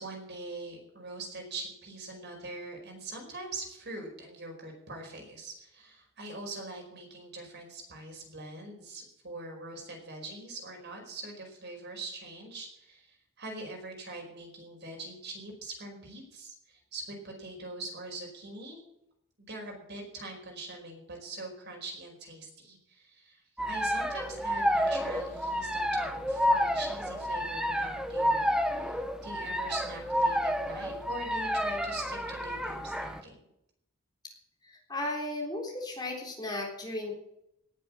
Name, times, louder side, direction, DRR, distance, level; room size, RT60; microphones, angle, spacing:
voice 1, 0.0-18.8 19.4-23.4 23.6-33.4, right 2 dB, 50° right, 1 dB, 5.0 m, -43 dB
sound 1, 23.6-33.2, equal, 5° right, 1.0 m, -30 dB
voice 2, 34.6-37.1, left 1 dB, 20° left, -1 dB, 3.7 m, -35 dB
18.5 x 7.9 x 7.3 m, 0.79 s
head